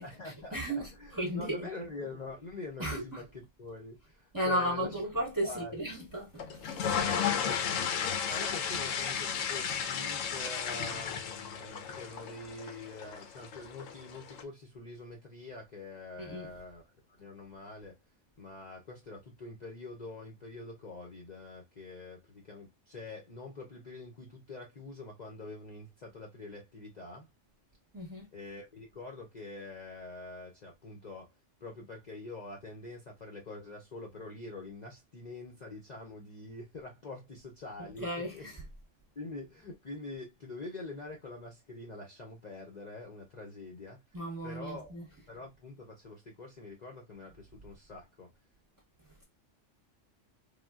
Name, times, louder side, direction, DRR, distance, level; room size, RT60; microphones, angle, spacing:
voice 1, 0.0-4.9 5.4-5.8 7.0-7.6 8.3-18.0 18.4-27.3 28.3-31.3 31.6-38.5 39.2-48.3, left 2 dB, 45° left, 0.6 m, -45 dB
voice 2, 0.5-1.7 2.8-3.2 4.3-7.0 16.2-16.5 27.9-28.3 38.0-38.6 44.1-45.0, equal, 20° right, 0.7 m, -34 dB
sound 1, 6.4-14.4, left 7 dB, 90° left, 1.0 m, -34 dB
3.4 x 2.2 x 2.2 m
omnidirectional pair, 1.3 m